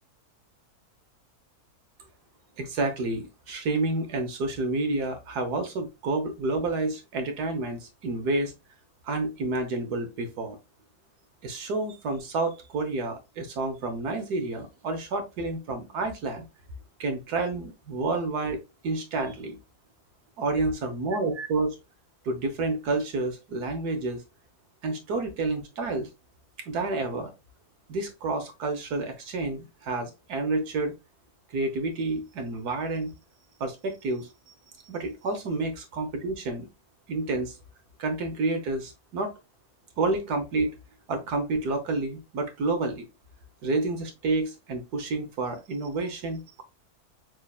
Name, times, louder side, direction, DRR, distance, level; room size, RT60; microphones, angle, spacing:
voice 1, 2.6-8.5 9.0-10.6 11.4-16.5 17.0-18.6 18.8-19.6 20.4-21.8 22.3-24.2 24.8-26.1 26.7-27.3 27.9-30.9 31.5-33.1 33.6-34.5 34.8-36.7 37.1-37.5 38.0-39.3 40.0-40.8 41.1-43.1 43.6-46.6, right 3 dB, 90° right, 5 dB, 1.7 m, -29 dB
6.3 x 3.1 x 2.4 m, 0.24 s
omnidirectional pair, 1.6 m